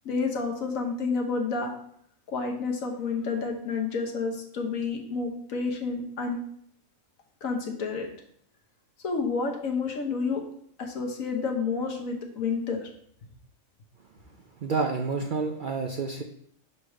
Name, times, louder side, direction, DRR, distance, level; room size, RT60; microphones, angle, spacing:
voice 1, 0.0-1.7 2.3-6.4 7.4-8.1 9.0-10.4 10.8-12.9, left 4 dB, 80° left, 2 dB, 1.5 m, -29 dB
voice 2, 14.6-16.2, right 4 dB, 60° right, 3 dB, 0.5 m, -29 dB
4.8 x 4.2 x 5.9 m, 0.67 s
omnidirectional pair, 1.4 m